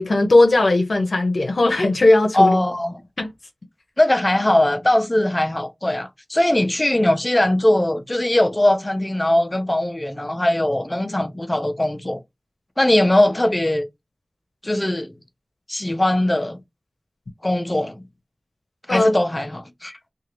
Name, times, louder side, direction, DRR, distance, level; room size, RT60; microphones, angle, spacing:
voice 1, 0.0-2.6 3.2-3.3 18.9-19.1, left 2 dB, 85° left, 0.6 m, -17 dB
voice 2, 2.3-3.0 4.0-12.2 12.8-13.8 14.6-15.1 15.7-16.6 17.4-18.0 18.9-20.0, left 1 dB, 30° left, 0.6 m, -20 dB
2.7 x 2.4 x 3.0 m
wide cardioid pair, 55°, 0 cm